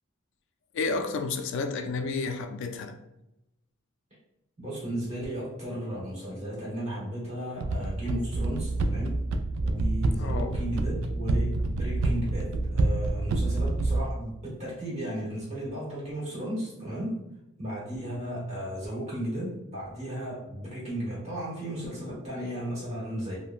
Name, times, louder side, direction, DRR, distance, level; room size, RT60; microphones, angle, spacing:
voice 1, 0.7-3.0 10.1-10.5, left 4 dB, 60° left, 0.3 m, -31 dB
voice 2, 4.6-9.2 9.6-17.2 17.6-23.3, right 1 dB, 35° right, 1.5 m, -35 dB
sound 1, 7.6-14.0, right 2 dB, 80° right, 0.3 m, -27 dB
3.6 x 2.1 x 2.3 m
head